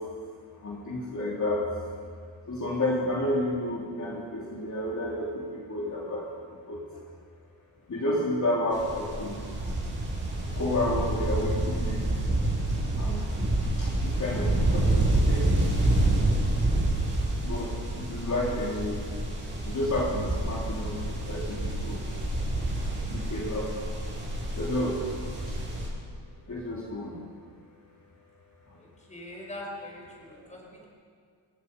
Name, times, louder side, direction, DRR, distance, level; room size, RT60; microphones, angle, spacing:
voice 1, 0.6-1.6 2.5-6.2 6.7-6.8 7.9-9.4 10.6-12.0 12.9-13.2 13.8-15.8 16.0-16.3 17.4-19.0 19.7-22.0 23.1-23.9 24.6-25.0 26.5-27.2 30.3-30.4, left 1 dB, 40° left, -5 dB, 3.6 m, -31 dB
sound 1, 8.7-25.9, right 1 dB, 25° right, 7.0 m, -28 dB
voice 2, 14.2-14.7 28.8-30.9, left 1 dB, 15° left, -2 dB, 5.4 m, -42 dB
29.0 x 16.5 x 5.5 m, 2.2 s
wide cardioid pair, 140°, 45 cm